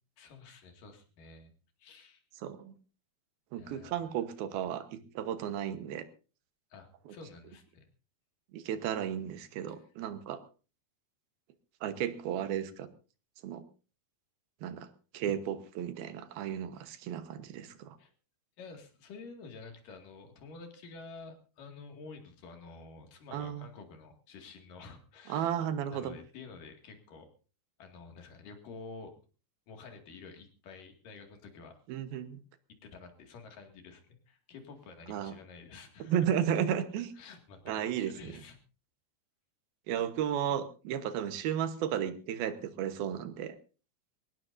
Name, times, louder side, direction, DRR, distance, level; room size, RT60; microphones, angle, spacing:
voice 1, 0.2-1.5 1.8-2.2 3.6-4.1 6.7-7.9 9.7-9.9 18.0-18.1 18.6-25.5 25.9-27.3 27.8-29.1 29.7-31.8 32.8-34.0 34.3-36.3 37.2-38.6, left 4 dB, 65° left, 4 dB, 3.7 m, -50 dB
voice 2, 2.4-2.7 3.5-6.0 8.5-10.4 11.8-12.9 13.4-13.6 14.6-14.9 15.1-18.0 23.3-23.7 25.3-26.1 31.9-32.4 35.1-35.3 36.0-37.1 37.7-38.4 39.9-43.6, right 9 dB, 90° right, 10 dB, 3.1 m, -34 dB
23.0 x 18.5 x 2.6 m, 0.36 s
omnidirectional pair, 4.2 m